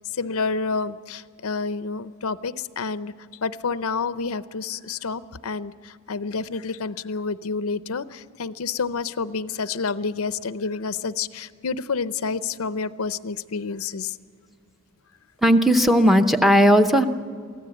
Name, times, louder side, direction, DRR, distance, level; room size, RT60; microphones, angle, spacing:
voice 1, 0.0-3.1 3.4-14.2, left 4 dB, 85° left, 14 dB, 0.6 m, -29 dB
voice 2, 15.4-17.1, equal, ahead, 6 dB, 0.7 m, -16 dB
24.0 x 16.0 x 7.9 m, 2.2 s
head